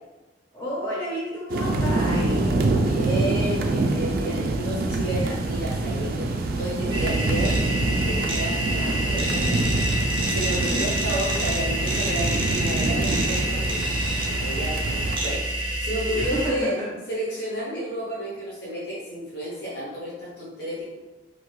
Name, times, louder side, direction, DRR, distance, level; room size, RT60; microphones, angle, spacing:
voice 1, 0.5-2.6 8.5-9.0 10.6-10.7 16.1-16.5, equal, 30° left, -7 dB, 0.7 m, -31 dB
sound 1, 1.5-15.2, right 2 dB, 55° right, 0.3 m, -25 dB
voice 2, 2.7-16.8 17.1-20.8, right 1 dB, 60° left, -7 dB, 0.9 m, -32 dB
sound 2, 6.9-16.5, right 1 dB, 25° right, 0.7 m, -27 dB
2.8 x 2.5 x 3.1 m, 1.1 s
head